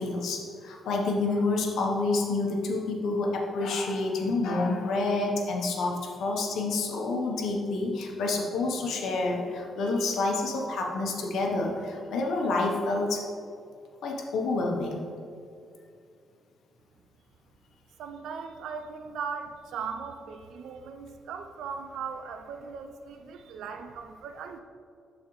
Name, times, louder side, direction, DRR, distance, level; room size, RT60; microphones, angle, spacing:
voice 1, 0.0-13.3 14.0-15.0, left 3 dB, 70° left, 0 dB, 0.9 m, -28 dB
voice 2, 18.0-24.6, right 6 dB, 85° right, 7 dB, 0.4 m, -38 dB
12.0 x 4.1 x 3.1 m, 2.4 s
cardioid pair, 155°, 0 cm